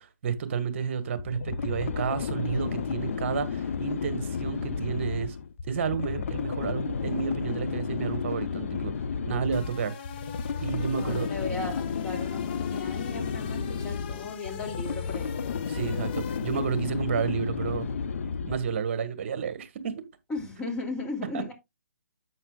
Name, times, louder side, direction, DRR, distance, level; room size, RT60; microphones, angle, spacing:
voice 1, 0.0-5.3 5.6-8.9 9.3-9.9 10.6-11.3 15.7-17.9 18.4-20.0 21.3-21.4, right 6 dB, 45° right, 1.6 m, -31 dB
sound 1, 1.2-18.8, left 6 dB, 55° left, 1.0 m, -32 dB
sound 2, 9.5-16.9, left 9 dB, 35° left, 1.3 m, -42 dB
voice 2, 11.0-15.3 20.3-21.5, left 3 dB, 10° left, 2.6 m, -36 dB
10.5 x 8.1 x 2.4 m
hypercardioid pair, 145°, 9 cm